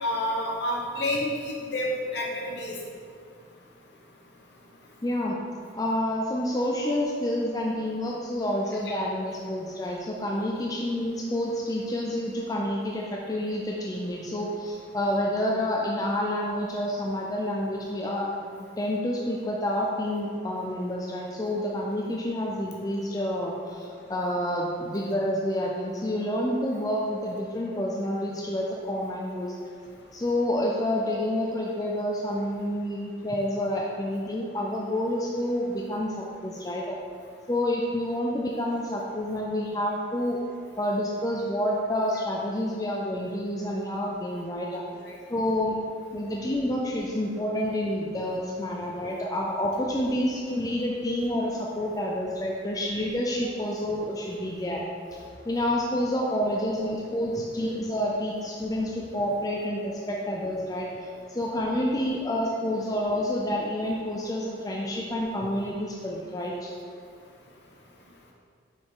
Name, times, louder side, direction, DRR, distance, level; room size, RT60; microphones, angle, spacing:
voice 1, 0.0-2.8, left 1 dB, 60° left, -2 dB, 1.1 m, -29 dB
voice 2, 5.0-5.4 5.7-18.3 18.6-29.5 30.1-37.0 37.5-40.4 40.8-44.8 45.3-45.8 46.1-66.7, left 1 dB, 20° left, -2 dB, 0.4 m, -29 dB
6.3 x 4.8 x 3.7 m, 2.3 s
head